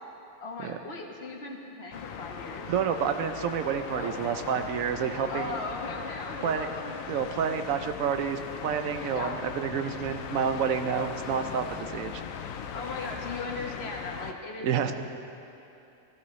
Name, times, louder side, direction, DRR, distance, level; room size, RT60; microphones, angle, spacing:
voice 1, 0.4-2.7 3.9-4.5 5.3-7.2 7.5-7.6 9.1-9.4 12.7-14.9, left 3 dB, 55° left, 0 dB, 1.3 m, -38 dB
sound 1, 1.9-14.3, left 7 dB, 90° left, 1.0 m, -39 dB
voice 2, 2.7-5.6 6.4-6.7 7.1-12.2 14.6-14.9, right 7 dB, 85° right, 7 dB, 1.1 m, -29 dB
16.0 x 13.5 x 3.1 m, 2.8 s
omnidirectional pair, 1.4 m